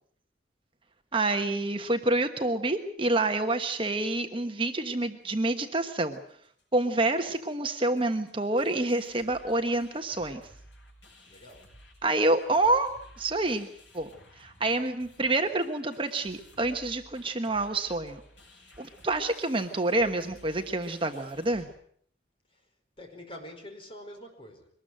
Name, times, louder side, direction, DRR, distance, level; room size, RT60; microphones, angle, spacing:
voice 1, 1.1-6.2 6.7-10.4 12.0-12.9 13.2-13.7 13.9-14.1 14.4-18.2 18.8-21.7, right 2 dB, 30° right, 6 dB, 1.2 m, -27 dB
sound 1, 6.1-6.2 6.4-6.8 7.0-7.1 7.3-21.7, left 1 dB, 80° left, 7.6 m, -55 dB
voice 2, 11.3-11.7 22.5-22.7 23.0-24.7, left 1 dB, 30° left, 4 dB, 5.0 m, -46 dB
23.5 x 20.0 x 7.7 m, 0.63 s
head